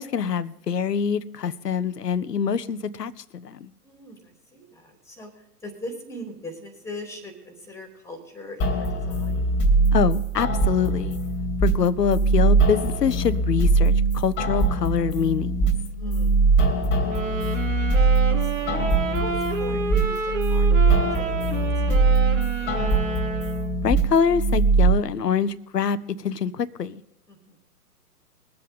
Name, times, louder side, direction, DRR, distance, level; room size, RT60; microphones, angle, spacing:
voice 1, 0.0-3.7 9.9-11.2 11.6-15.6 23.8-27.0, left 7 dB, 80° left, 0.9 m, -25 dB
voice 2, 3.8-9.4 11.5-11.6 16.0-16.4 17.0-18.7 19.1-22.9 27.3-27.6, left 1 dB, 5° left, 3.1 m, -42 dB
sound 1, 8.6-24.9, right 3 dB, 25° left, 2.4 m, -22 dB
sound 2, 17.0-23.9, right 4 dB, 50° right, 2.2 m, -30 dB
22.0 x 7.8 x 3.7 m
figure-of-eight pair, 125°, 47 cm